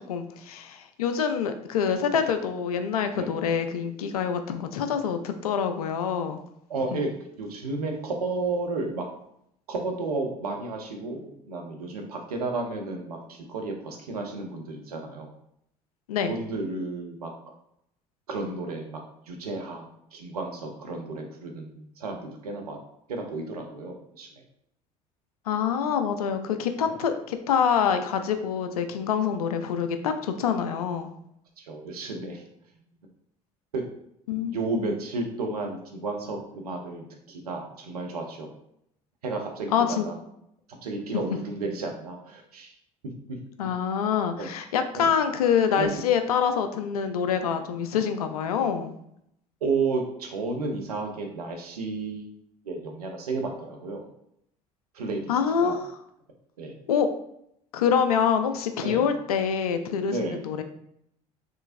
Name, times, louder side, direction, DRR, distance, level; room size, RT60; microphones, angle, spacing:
voice 1, 0.1-6.4 6.9-7.0 16.1-16.3 25.5-31.1 34.3-34.9 39.7-40.1 43.6-48.9 55.3-56.0 56.9-57.1 57.7-60.6, left 7 dB, 85° left, 8 dB, 0.4 m, -26 dB
voice 2, 6.7-7.1 7.4-9.1 9.7-15.3 16.2-17.3 18.3-19.0 19.3-22.8 23.1-24.3 26.8-26.9 31.6-32.4 33.7-33.8 34.4-38.5 39.2-40.2 40.8-42.7 44.4-44.5 44.9-45.1 45.8-46.1 49.6-52.3 52.7-54.0 54.9-55.3 55.6-55.8 56.6-56.7 58.8-59.1 60.1-60.4, right 3 dB, 85° right, 2 dB, 0.6 m, -32 dB
3.7 x 3.2 x 2.5 m, 0.75 s
hypercardioid pair, 60°, 19 cm